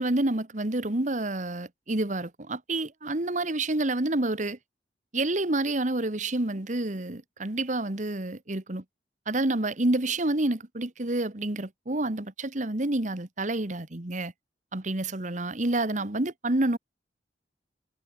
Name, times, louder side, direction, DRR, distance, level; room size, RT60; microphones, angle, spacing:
voice 1, 0.0-4.6 5.1-8.8 9.3-14.3 14.7-16.8, right 2 dB, 45° right, 1.6 m, -28 dB
head